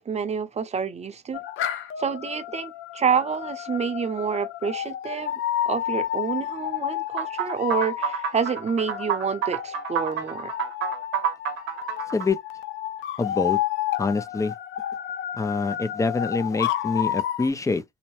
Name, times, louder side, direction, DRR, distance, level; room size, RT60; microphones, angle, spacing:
voice 1, 0.0-1.4 2.0-5.4 5.7-10.5, right 6 dB, 35° right, 0.6 m, -28 dB
sound 1, 1.3-17.5, left 12 dB, 80° left, 0.5 m, -31 dB
sound 2, 7.2-12.3, right 8 dB, 90° right, 0.7 m, -29 dB
voice 2, 13.2-13.6 14.0-14.5 15.4-17.8, left 3 dB, 15° left, 0.4 m, -25 dB
2.7 x 2.0 x 3.0 m
cardioid pair, 90°, 20 cm